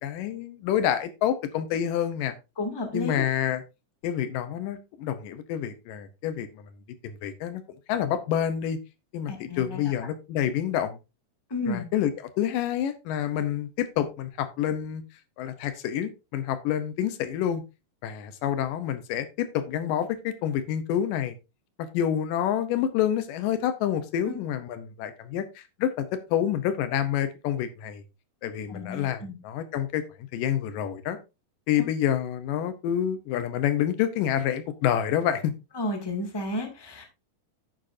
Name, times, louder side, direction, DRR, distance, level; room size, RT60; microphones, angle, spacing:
voice 1, 0.0-2.3 2.9-3.6 4.0-6.5 7.0-7.6 7.9-8.8 9.1-11.0 11.7-12.1 12.4-15.0 15.4-17.6 18.0-21.4 21.8-28.0 28.4-30.0 30.3-31.2 31.7-35.5, left 10 dB, 80° left, 11 dB, 2.5 m, -28 dB
voice 2, 2.6-3.2 9.3-9.9 11.5-11.9 24.3-24.4 28.7-29.4 35.7-37.0, left 2 dB, 10° left, 3 dB, 1.7 m, -32 dB
9.8 x 9.2 x 2.6 m, 0.27 s
omnidirectional pair, 3.9 m